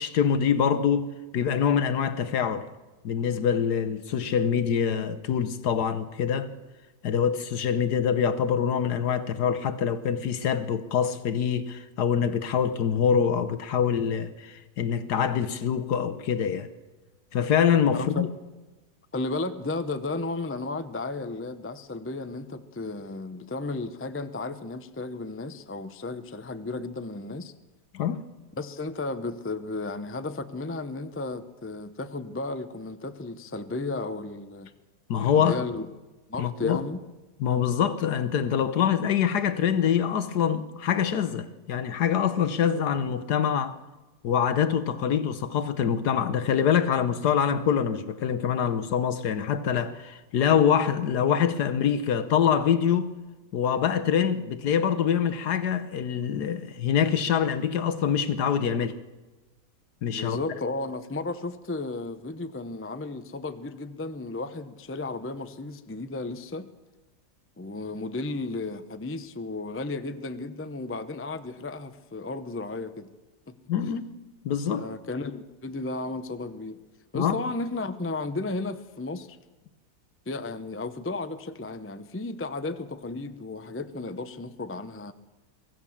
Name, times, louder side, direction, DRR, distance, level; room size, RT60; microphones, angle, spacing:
voice 1, 0.0-2.7 3.0-6.5 7.0-16.7 17.3-18.3 27.9-28.2 35.1-35.6 36.4-36.8 37.4-43.8 44.2-53.1 53.5-58.9 60.0-60.4 73.7-74.1 74.4-74.9 77.1-77.3, left 8 dB, 75° left, 1.5 m, -25 dB
voice 2, 17.9-18.3 19.1-27.5 28.6-34.7 35.3-35.9 36.3-37.0 60.1-66.7 67.6-73.1 74.7-76.8 77.1-79.4 80.3-85.1, left 3 dB, 15° left, 0.4 m, -34 dB
24.0 x 15.5 x 7.3 m
omnidirectional pair, 1.8 m